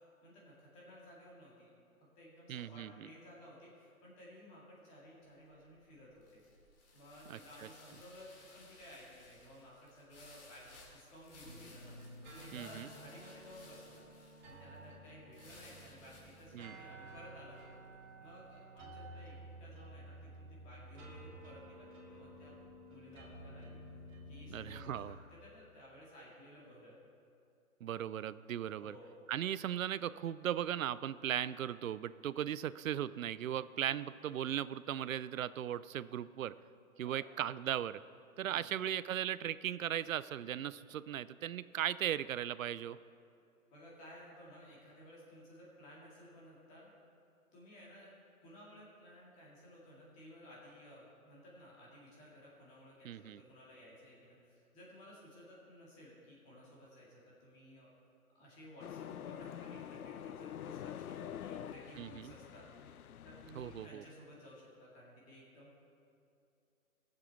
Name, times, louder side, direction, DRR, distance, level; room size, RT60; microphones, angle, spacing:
voice 1, 0.2-1.7 2.0-6.4 6.9-14.1 14.4-17.7 18.2-22.6 22.9-23.8 24.3-27.0 28.6-29.2 37.0-37.2 38.5-38.7 43.7-46.9 47.5-48.1 48.4-57.9 58.3-62.6 63.2-65.8, equal, 15° left, -5 dB, 2.0 m, -56 dB
voice 2, 2.5-3.1 7.3-7.4 12.5-12.9 16.5-16.8 24.5-25.2 27.8-28.9 29.3-36.5 37.0-38.0 38.4-43.0 53.0-53.4 62.0-62.3 63.6-64.0, right 10 dB, 65° right, 17 dB, 0.5 m, -37 dB
sound 1, 5.4-18.5, left 2 dB, 40° left, 2.5 m, -60 dB
sound 2, 11.4-25.1, right 1 dB, 30° right, 2.3 m, -53 dB
sound 3, 58.8-63.9, left 9 dB, 80° left, 0.6 m, -46 dB
17.0 x 7.6 x 4.5 m, 2.5 s
hypercardioid pair, 165°, 44 cm